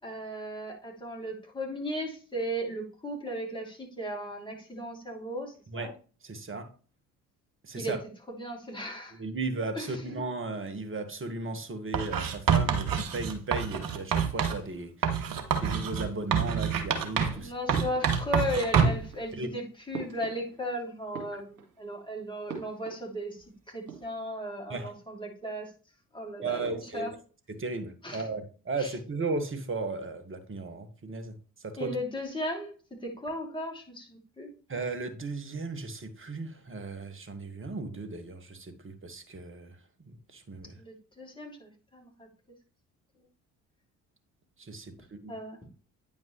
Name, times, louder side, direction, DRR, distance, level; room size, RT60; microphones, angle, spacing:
voice 1, 0.0-5.9 7.7-8.0 8.3-9.2 9.7-10.0 17.3-25.7 26.1-27.1 28.0-28.3 28.8-28.9 31.8-32.7 33.0-34.5 40.8-42.3 45.3-45.6, equal, 10° left, 3.2 m, -36 dB
voice 2, 6.2-6.7 7.6-8.0 9.1-17.5 19.3-19.5 24.7-24.9 26.4-27.2 27.5-31.4 31.6-31.9 34.7-39.8 40.3-40.8 44.6-45.3, right 3 dB, 30° right, 1.6 m, -36 dB
Writing, 11.9-14.6 15.0-17.4 17.7-19.1, right 7 dB, 50° right, 1.2 m, -27 dB
sound 1, 17.7-18.4 18.8-20.8 21.0-21.9 22.5-23.5 23.7-24.3, right 6 dB, 75° right, 2.0 m, -43 dB
9.3 x 5.3 x 3.2 m
figure-of-eight pair, 45°, 43 cm